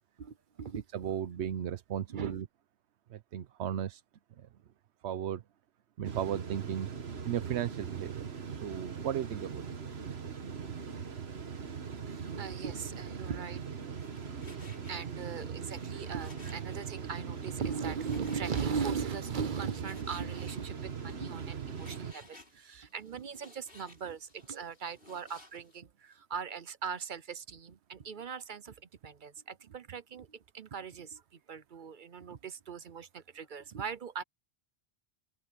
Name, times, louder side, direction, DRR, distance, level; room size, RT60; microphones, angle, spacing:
voice 1, 0.2-1.1 2.1-2.4 12.1-13.7 14.3-14.4 14.9-34.2, right 6 dB, 55° right, 0.8 m, -39 dB
voice 2, 0.9-2.5 3.1-4.0 5.0-5.4 6.0-6.9 7.3-9.6, right 10 dB, 90° right, 1.0 m, -35 dB
sound 1, 6.0-22.1, right 6 dB, 70° right, 1.7 m, -40 dB
Frying (food), 13.9-25.8, left 2 dB, 60° left, 4.1 m, -58 dB
open air
omnidirectional pair, 1.1 m